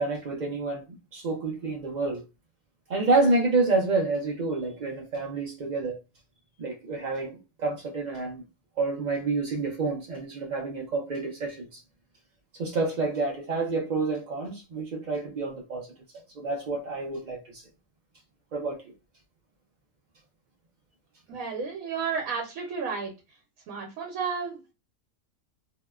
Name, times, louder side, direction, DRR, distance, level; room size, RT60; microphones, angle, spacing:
voice 1, 0.0-2.2 2.9-6.0 6.6-8.4 8.8-11.8 12.6-15.9 16.3-17.6 18.5-18.9, right 3 dB, 60° right, 0.4 m, -28 dB
voice 2, 21.3-23.1 23.7-24.7, right 5 dB, 85° right, 1.1 m, -32 dB
2.8 x 2.1 x 2.2 m
omnidirectional pair, 1.4 m